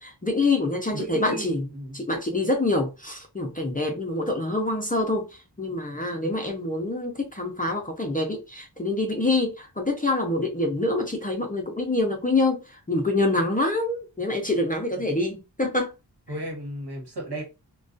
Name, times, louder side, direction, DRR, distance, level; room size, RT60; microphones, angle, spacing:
voice 1, 0.0-1.7 1.9-15.9, left 2 dB, 20° left, 0.4 m, -26 dB
voice 2, 0.9-2.0 16.3-17.4, right 1 dB, 65° right, 1.3 m, -34 dB
2.3 x 2.2 x 2.5 m
wide cardioid pair, 105°, 43 cm